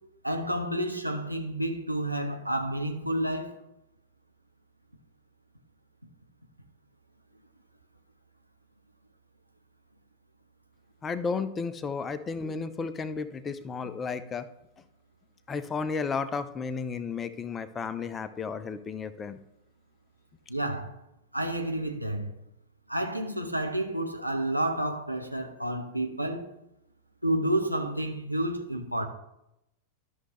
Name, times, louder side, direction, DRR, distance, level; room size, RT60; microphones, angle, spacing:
voice 1, 0.2-3.6 20.5-21.0 21.3-22.3 22.9-26.5 27.2-29.1, right 1 dB, 90° right, 1.0 m, -30 dB
voice 2, 11.0-14.5 15.5-19.4, left 5 dB, 20° left, 0.6 m, -33 dB
12.5 x 6.4 x 3.2 m
figure-of-eight pair, 90°, 0 cm